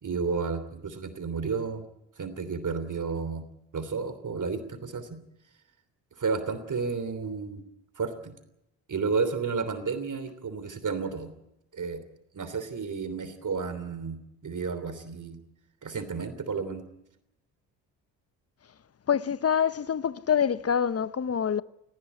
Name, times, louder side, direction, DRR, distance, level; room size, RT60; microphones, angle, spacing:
voice 1, 0.0-1.8 2.2-3.4 3.7-5.1 6.2-7.6 8.0-8.3 8.9-11.3 11.7-12.0 12.3-15.4 15.8-16.8, right 5 dB, 45° right, 3.2 m, -32 dB
voice 2, 19.1-21.6, left 8 dB, 35° left, 0.9 m, -26 dB
19.0 x 16.0 x 9.9 m
hypercardioid pair, 50°, 44 cm